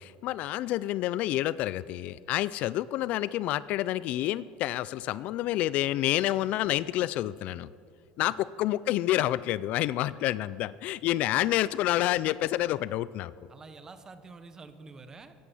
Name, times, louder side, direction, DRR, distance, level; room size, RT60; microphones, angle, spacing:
voice 1, 0.0-7.7 8.2-13.3, left 14 dB, 50° left, 18 dB, 0.3 m, -28 dB
voice 2, 13.5-15.3, right 4 dB, 20° right, 10 dB, 0.9 m, -48 dB
15.5 x 11.0 x 7.0 m, 2.3 s
cardioid pair, 155°, 3 cm